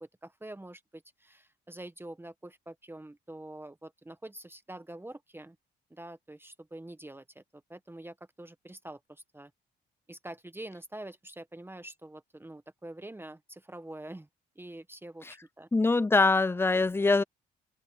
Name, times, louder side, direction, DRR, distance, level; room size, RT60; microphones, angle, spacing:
voice 1, 0.0-5.6 5.9-9.5 10.1-14.3 14.5-15.7, right 1 dB, 10° right, 1.1 m, -46 dB
voice 2, 15.7-17.2, left 3 dB, 10° left, 0.5 m, -23 dB
cardioid pair, 90°, 20 cm